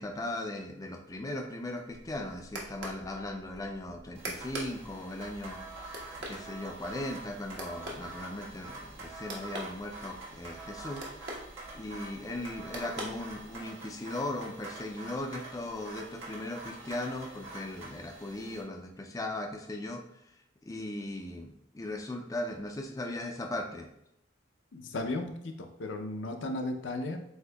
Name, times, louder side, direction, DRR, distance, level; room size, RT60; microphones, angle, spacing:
voice 1, 0.0-11.4 11.7-20.0 20.6-23.9, left 1 dB, 20° left, 2 dB, 0.4 m, -38 dB
sound 1, 1.8-13.8, right 1 dB, 65° right, 1.0 m, -45 dB
sound 2, 4.1-18.6, right 2 dB, 90° right, 1.6 m, -46 dB
voice 2, 24.7-27.2, left 2 dB, 70° left, 5 dB, 0.6 m, -35 dB
7.8 x 2.7 x 2.3 m, 0.80 s
head